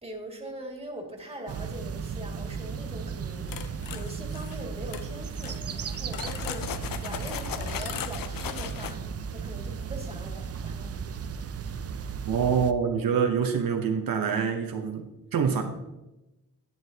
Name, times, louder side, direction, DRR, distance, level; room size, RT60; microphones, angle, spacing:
voice 1, 0.0-9.1 9.3-11.0, right 1 dB, 15° right, 1 dB, 2.2 m, -42 dB
sound 1, 1.5-12.7, right 6 dB, 45° right, 0.5 m, -35 dB
sound 2, 3.5-4.6 4.9-5.1 5.4-9.0, left 9 dB, 75° left, 0.6 m, -37 dB
voice 2, 12.3-15.6, right 6 dB, 75° right, 4 dB, 1.0 m, -26 dB
11.0 x 8.9 x 2.9 m, 0.96 s
cardioid pair, 75°, 35 cm